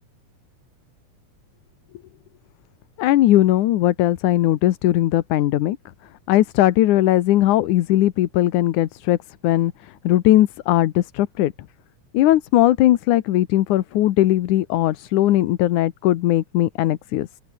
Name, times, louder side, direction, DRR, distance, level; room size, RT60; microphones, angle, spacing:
voice 1, 3.0-5.8 6.3-9.2 9.4-11.5 12.1-17.3, left 14 dB, 75° left, 2.5 m, -18 dB
open air
omnidirectional pair, 3.6 m